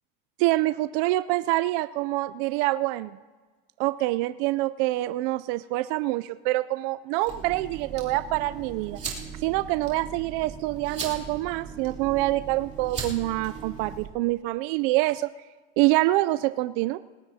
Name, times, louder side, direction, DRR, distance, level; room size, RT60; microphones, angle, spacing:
voice 1, 0.4-3.1 3.8-9.0 9.4-15.3 15.8-17.0, right 18 dB, 60° right, 14 dB, 0.4 m, -26 dB
sound 1, 7.3-14.1, right 5 dB, 20° right, 3.0 m, -38 dB
20.0 x 18.0 x 2.8 m, 1.4 s
supercardioid pair, 125°, 31 cm